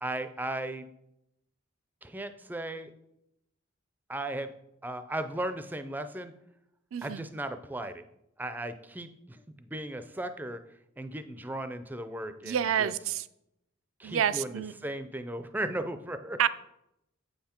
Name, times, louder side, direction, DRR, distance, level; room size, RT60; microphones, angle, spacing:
voice 1, 0.0-0.8 2.0-2.9 4.1-4.5 4.8-6.3 7.0-8.0 8.4-10.6 11.0-12.9 14.0-16.4, right 1 dB, 10° right, 10 dB, 0.4 m, -36 dB
voice 2, 6.9-7.2 12.4-13.3 14.0-14.7 16.4-16.5, right 9 dB, 85° right, 15 dB, 0.4 m, -28 dB
8.1 x 5.7 x 4.3 m, 0.82 s
head